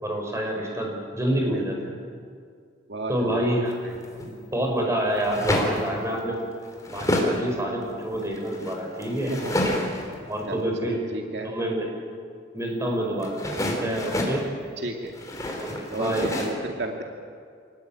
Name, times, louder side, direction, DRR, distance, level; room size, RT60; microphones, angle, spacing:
voice 1, 0.0-2.0 3.1-3.8 4.2-6.4 6.9-9.3 10.3-11.0 11.4-11.9 12.5-14.4 15.6-16.4, right 1 dB, 15° right, 1 dB, 5.6 m, -27 dB
voice 2, 2.9-3.4 3.8-3.9 9.3-9.6 10.5-11.5 14.8-15.1 15.9-17.0, right 1 dB, 65° right, 2 dB, 2.4 m, -33 dB
sound 1, 3.7-4.3 5.1-5.9 6.4-7.4 7.8-10.2 13.2-14.4 15.0-16.5, left 1 dB, 20° left, 4.2 m, -28 dB
28.0 x 19.5 x 9.0 m, 2.2 s
head